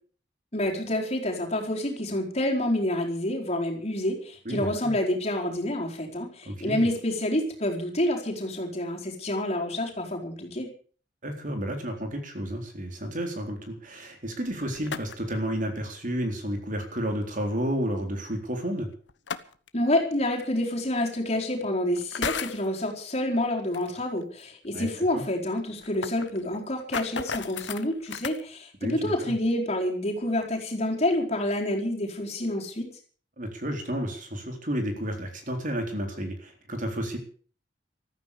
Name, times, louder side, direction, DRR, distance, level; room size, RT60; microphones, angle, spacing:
voice 1, 0.5-10.7 19.7-32.9, left 1 dB, 35° left, 0 dB, 4.4 m, -28 dB
voice 2, 4.4-4.9 6.5-6.8 11.2-18.9 24.7-25.2 28.8-29.3 33.4-37.2, equal, 45° right, 4 dB, 4.2 m, -31 dB
sound 1, 14.5-15.4 17.0-17.1 19.1-19.7 20.8-20.9 22.0-22.7 23.7-23.9 24.2-24.3 24.6-24.7 24.9-25.0 25.6-28.4, left 6 dB, 85° left, 1.2 m, -34 dB
15.0 x 14.0 x 6.8 m, 0.44 s
head